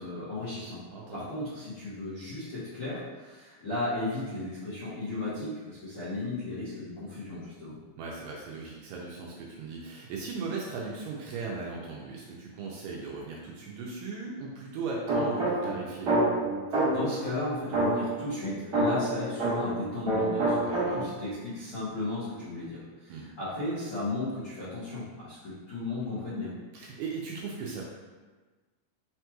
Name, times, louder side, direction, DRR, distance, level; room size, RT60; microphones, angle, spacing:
voice 1, 0.0-0.8 1.1-7.7 16.8-20.6 20.9-26.5, left 2 dB, 75° left, -13 dB, 1.2 m, -35 dB
voice 2, 0.9-1.2 8.0-16.1 20.6-21.0 23.1-23.3 26.7-27.8, right 4 dB, 80° right, -3 dB, 2.0 m, -37 dB
sound 1, 15.1-17.2 17.7-19.8 20.1-21.3, right 2 dB, 55° right, 1.0 m, -27 dB
5.7 x 2.9 x 2.2 m, 1.3 s
omnidirectional pair, 4.2 m